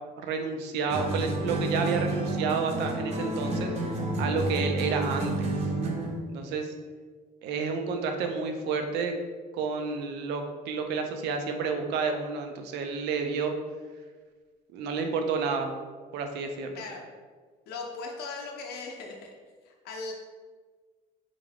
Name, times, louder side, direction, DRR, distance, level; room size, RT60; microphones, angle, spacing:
voice 1, 0.2-3.7 4.2-5.5 6.3-6.7 7.4-9.1 9.5-13.5 14.7-15.7 16.1-16.7, right 5 dB, 85° right, 5 dB, 0.5 m, -30 dB
sound 1, 0.9-6.2, right 2 dB, 40° right, 0.6 m, -30 dB
voice 2, 16.7-17.1 17.7-19.3 19.6-20.1, left 4 dB, 70° left, 1 dB, 0.5 m, -38 dB
3.7 x 2.3 x 3.3 m, 1.5 s
cardioid pair, 110°, 17 cm